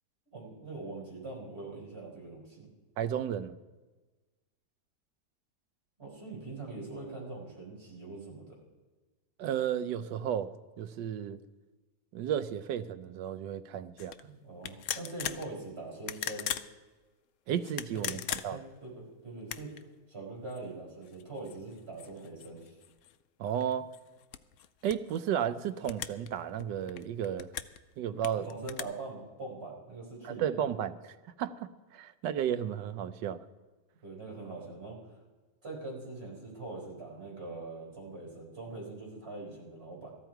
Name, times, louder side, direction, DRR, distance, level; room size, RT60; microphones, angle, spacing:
voice 1, 0.3-2.7 6.0-8.6 14.2-16.5 17.9-18.2 18.5-19.7 20.1-22.8 28.3-30.5 34.0-35.0 35.6-40.1, right 3 dB, 35° right, -3 dB, 4.9 m, -43 dB
voice 2, 3.0-3.6 9.4-11.4 12.1-14.1 17.5-18.6 23.4-23.9 24.8-27.5 28.0-28.5 30.2-30.9 31.4-33.4, right 9 dB, 85° right, 12 dB, 1.3 m, -33 dB
sound 1, 14.0-14.2 14.6-15.5 16.0-16.7 17.6-18.8 19.4-19.8 20.5-20.6 21.0-23.2 23.6-25.2 25.8-26.3 26.6-27.8 28.2-28.8, left 10 dB, 75° left, 0.7 m, -39 dB
14.5 x 13.0 x 4.6 m, 1.2 s
omnidirectional pair, 1.9 m